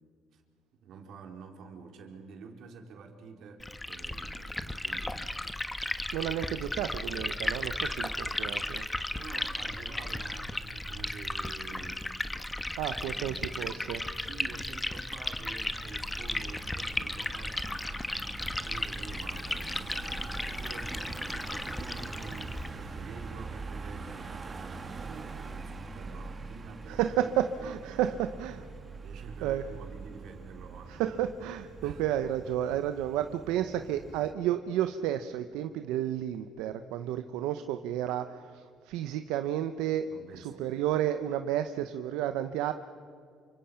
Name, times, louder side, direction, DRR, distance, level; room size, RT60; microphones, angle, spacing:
voice 1, 0.8-5.3 9.1-12.1 13.0-13.6 14.2-27.3 27.6-28.0 28.3-28.4 29.0-31.0 31.8-32.0 40.1-40.8, right 5 dB, 70° right, 2 dB, 4.4 m, -48 dB
Liquid, 3.6-22.7, left 1 dB, 10° left, 1.3 m, -35 dB
voice 2, 6.1-8.8 12.8-14.0 26.9-28.6 29.4-29.6 30.9-40.1 40.3-42.7, right 11 dB, 90° right, 9 dB, 0.9 m, -31 dB
Car passing by / Engine, 15.7-34.3, right 3 dB, 30° right, 2.3 m, -44 dB
29.0 x 25.5 x 5.8 m, 2.3 s
cardioid pair, 95°, 0 cm